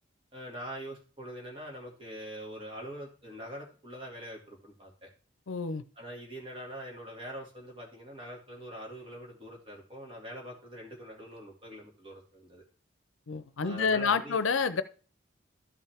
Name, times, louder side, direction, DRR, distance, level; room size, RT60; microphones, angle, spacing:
voice 1, 0.3-5.1 6.0-12.6 13.6-14.4, equal, 25° right, -1 dB, 2.4 m, -43 dB
voice 2, 5.5-5.8 13.3-14.8, left 5 dB, 90° left, 13 dB, 0.7 m, -28 dB
12.5 x 5.7 x 3.5 m, 0.38 s
head